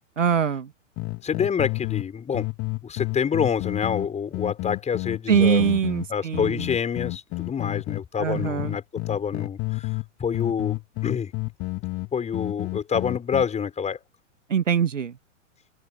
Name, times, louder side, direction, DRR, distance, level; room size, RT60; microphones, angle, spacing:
voice 1, 0.2-0.7 5.3-6.7 8.2-8.7 14.5-15.1, right 7 dB, 75° right, 1.9 m, -22 dB
sound 1, 1.0-2.1 2.3-8.0 8.3-10.1 10.3-13.4, left 23 dB, 35° left, 3.9 m, -30 dB
voice 2, 1.2-2.5 2.8-5.7 6.1-9.9 10.2-11.3 12.1-14.0, left 7 dB, 15° left, 6.5 m, -27 dB
open air
figure-of-eight pair, 100°, 38 cm